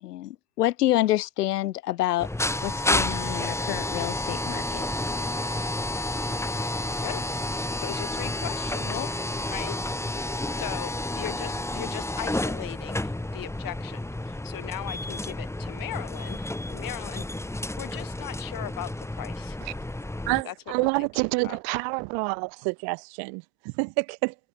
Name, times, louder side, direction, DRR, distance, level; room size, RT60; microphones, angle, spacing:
voice 1, 0.0-2.3 2.6-4.9 8.8-9.1, left 15 dB, 85° left, 2.2 m, -27 dB
sound 1, 2.2-20.4, left 1 dB, 5° left, 2.7 m, -30 dB
voice 2, 7.8-9.1 9.5-9.8 10.6-14.0 14.3-17.2 17.8-19.6 20.4-21.1 21.4-21.6, left 13 dB, 45° left, 3.5 m, -38 dB
voice 3, 20.3-24.3, right 39 dB, 55° right, 0.5 m, -28 dB
hypercardioid pair, 85°, 46 cm